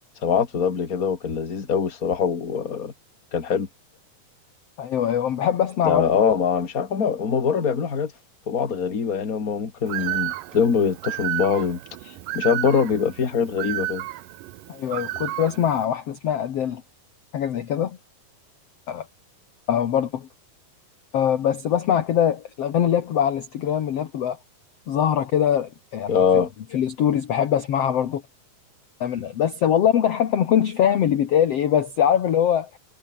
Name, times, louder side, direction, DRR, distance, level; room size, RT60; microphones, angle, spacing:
voice 1, 0.2-2.9 3.3-3.7 5.8-8.1 8.5-11.8 12.0-14.0 26.1-26.5, left 6 dB, 25° left, 2.3 m, -23 dB
voice 2, 4.8-6.1 14.7-16.8 17.3-18.0 18.9-19.1 19.7-20.3 21.1-24.4 24.9-26.4 26.7-28.2 29.0-32.8, left 9 dB, 55° left, 2.0 m, -22 dB
Bird, 9.9-15.8, right 15 dB, 75° right, 2.3 m, -32 dB
omnidirectional pair, 4.3 m